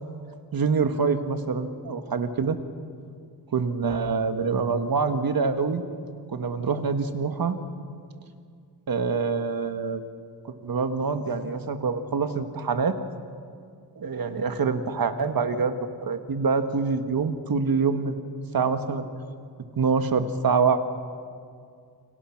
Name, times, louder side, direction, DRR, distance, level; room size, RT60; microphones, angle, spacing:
voice 1, 0.5-2.6 3.5-5.8 6.3-7.6 8.9-10.0 10.6-13.0 14.0-18.2 18.5-19.1 19.8-20.8, right 5 dB, 55° right, 8 dB, 1.6 m, -25 dB
29.5 x 25.0 x 6.0 m, 2.2 s
wide cardioid pair, 155°, 41 cm